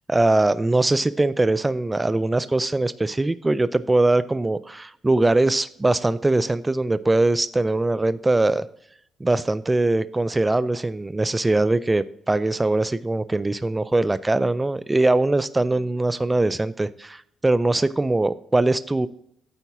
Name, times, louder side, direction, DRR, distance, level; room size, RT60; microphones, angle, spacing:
voice 1, 0.1-8.6 9.2-19.1, right 2 dB, 15° right, 15 dB, 0.3 m, -21 dB
9.1 x 4.0 x 5.8 m, 0.71 s
cardioid pair, 90°, 0 cm